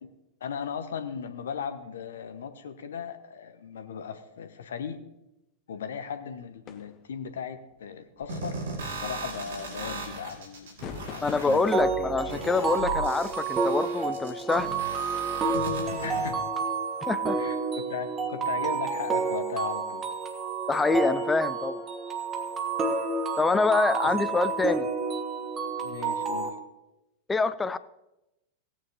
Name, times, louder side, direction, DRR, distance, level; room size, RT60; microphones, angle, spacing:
voice 1, 0.4-5.0 5.7-11.9 16.0-16.4 17.4-20.1 24.0-24.4 25.8-26.6, left 7 dB, 65° left, 0.9 m, -37 dB
sound 1, 6.7-7.1 8.2-9.5 10.8-11.8, left 8 dB, 35° left, 0.8 m, -43 dB
sound 2, 8.3-16.3, right 2 dB, 65° right, 2.4 m, -37 dB
voice 2, 11.2-14.7 17.1-17.4 20.7-21.8 23.4-24.9 27.3-27.8, left 3 dB, 15° left, 0.4 m, -26 dB
sound 3, 11.7-26.5, right 4 dB, 25° right, 1.3 m, -30 dB
17.0 x 9.0 x 2.9 m
figure-of-eight pair, 90°, 0 cm